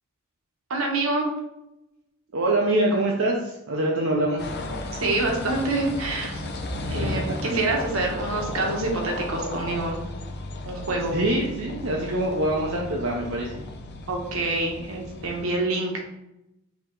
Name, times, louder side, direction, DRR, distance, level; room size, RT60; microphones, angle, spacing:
voice 1, 0.7-1.3 5.0-6.4 6.9-10.0 10.6-11.2 14.1-16.0, right 2 dB, 80° right, 1 dB, 1.0 m, -26 dB
voice 2, 2.3-4.5 11.1-13.6, right 1 dB, 65° right, -2 dB, 0.6 m, -24 dB
sound 1, 4.4-15.4, left 1 dB, 50° left, 0.5 m, -34 dB
4.8 x 2.8 x 3.8 m, 0.89 s
head